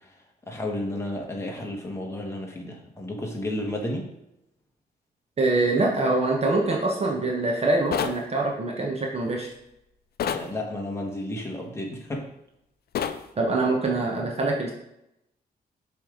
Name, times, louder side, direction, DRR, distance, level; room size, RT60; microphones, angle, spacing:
voice 1, 0.5-4.1 10.3-12.3, left 1 dB, 15° left, 0 dB, 1.3 m, -32 dB
voice 2, 5.4-9.5 13.4-14.7, right 2 dB, 40° right, -1 dB, 1.0 m, -24 dB
sound 1, 7.9-8.2 10.2-10.5 12.9-13.2, left 8 dB, 70° left, 0.5 m, -27 dB
7.5 x 3.4 x 5.0 m, 0.83 s
wide cardioid pair, 135°, 17 cm